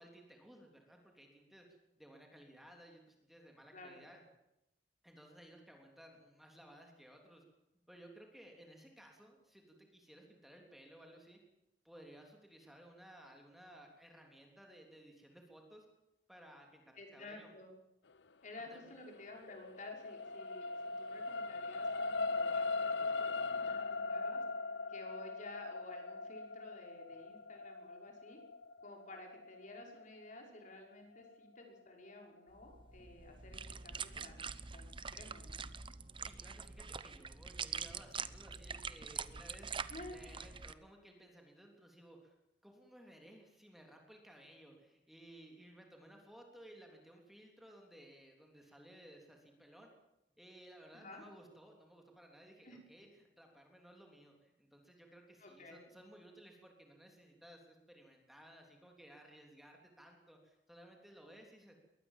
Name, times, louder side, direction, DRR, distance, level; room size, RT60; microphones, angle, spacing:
voice 1, 0.0-1.7 2.0-4.2 5.0-7.4 7.9-11.4 11.8-15.9 16.3-17.5 18.7-18.9 36.2-42.3 42.6-49.9 50.4-61.8, right 1 dB, ahead, 1 dB, 3.4 m, -58 dB
voice 2, 17.0-17.7 18.4-24.4 24.9-28.4 28.8-35.7 39.9-40.3 50.9-51.2 52.6-52.8 55.4-55.9, left 2 dB, 45° left, 2 dB, 5.7 m, -53 dB
sound 1, 19.0-31.6 32.1-32.2, left 3 dB, 90° left, 0.8 m, -40 dB
sound 2, 32.6-40.7, right 6 dB, 30° right, 0.9 m, -45 dB
22.0 x 18.5 x 7.5 m, 0.87 s
head